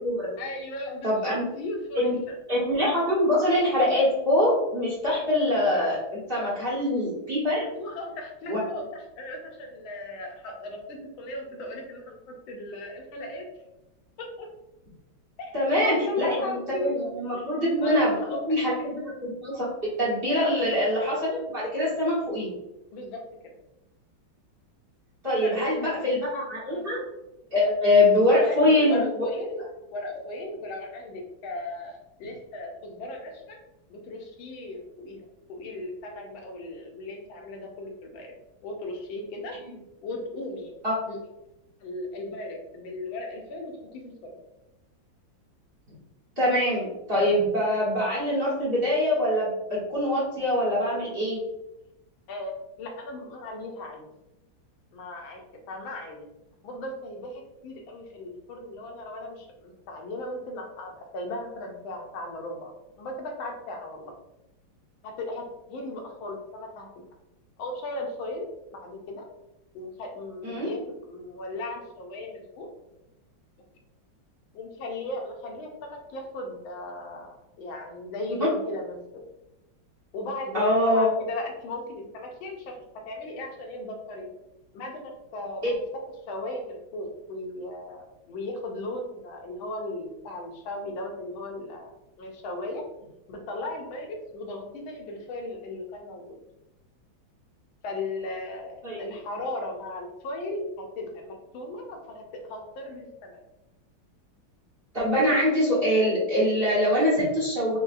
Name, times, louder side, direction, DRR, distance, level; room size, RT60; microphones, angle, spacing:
voice 1, 0.4-2.1 5.1-5.2 7.8-13.5 14.2-14.5 15.4-15.5 15.8-16.9 17.3-17.4 17.8-18.4 18.8-18.9 20.4-20.6 22.9-23.2 25.4-26.0 26.7-26.9 28.1-29.6 29.9-33.6 33.9-35.2 35.5-38.3 38.6-39.6 40.0-40.7 41.1-41.2 41.8-44.4 52.3-54.0 54.9-55.4 55.7-56.3 56.6-62.7 63.0-64.1 65.0-67.0 67.6-68.5 68.7-69.3 69.7-72.7 74.5-77.3 77.6-79.0 80.1-82.8 83.0-84.3 84.7-85.7 86.3-91.9 92.2-92.9 93.3-96.4 97.8-103.4, left 2 dB, 80° left, 1 dB, 1.5 m, -36 dB
voice 2, 1.0-1.4 1.9-2.2 2.5-7.6 8.5-8.6 15.5-18.1 18.5-19.1 19.4-19.7 20.0-22.5 25.2-27.0 27.5-29.0 40.8-40.9 46.4-51.4 70.4-70.7 78.3-78.5 80.5-81.1 85.6-85.7 98.8-99.0 104.9-107.8, left 1 dB, 35° right, -8 dB, 1.2 m, -24 dB
5.1 x 2.3 x 2.5 m, 0.92 s
omnidirectional pair, 2.2 m